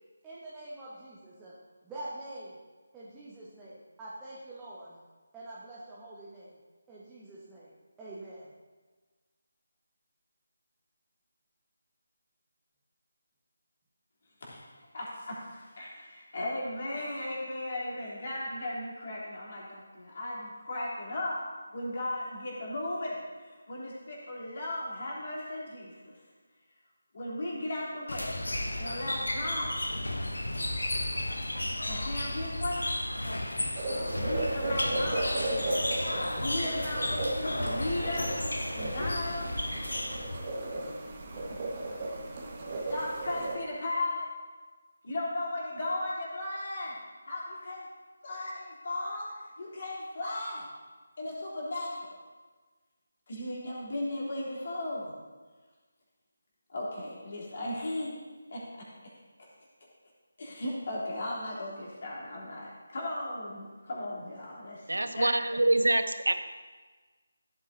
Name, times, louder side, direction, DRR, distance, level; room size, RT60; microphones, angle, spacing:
voice 1, 0.2-1.5 1.8-2.6 2.9-5.0 5.3-6.6 6.9-7.7 8.0-8.5, right 1 dB, 10° right, -9 dB, 1.3 m, -45 dB
voice 2, 14.4-21.4 21.7-26.1 27.1-28.3 28.8-29.9 31.8-32.9 34.1-35.6 36.3-38.3 38.7-39.5 41.4-41.6 42.0-42.1 42.9-44.3 45.0-47.0 47.2-47.9 48.2-49.3 49.6-50.7 51.2-52.2 53.3-55.1 56.7-58.2 58.5-58.6 60.4-65.3, left 1 dB, 45° left, -5 dB, 3.3 m, -36 dB
sound 1, 28.1-40.5, left 1 dB, 75° left, 1.1 m, -33 dB
sound 2, 33.8-43.6, right 2 dB, 25° right, 1.5 m, -35 dB
voice 3, 64.9-66.3, right 2 dB, 75° right, 9 dB, 0.8 m, -25 dB
15.0 x 8.6 x 2.7 m, 1.4 s
figure-of-eight pair, 155°, 0 cm